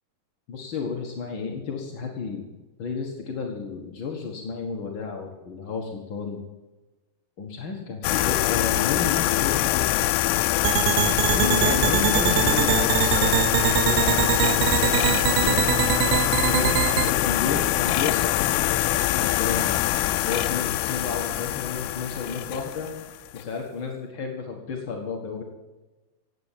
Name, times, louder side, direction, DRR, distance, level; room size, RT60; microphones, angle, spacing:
voice 1, 0.5-2.4 2.8-6.4 7.4-10.5 11.1-22.9 23.3-25.4, left 5 dB, 55° left, 1 dB, 1.3 m, -32 dB
sound 1, 8.0-23.4, left 15 dB, 85° left, 2.8 m, -24 dB
sound 2, 10.6-17.1, right 15 dB, 85° right, 2.7 m, -23 dB
17.0 x 8.8 x 7.4 m, 1.1 s
omnidirectional pair, 4.8 m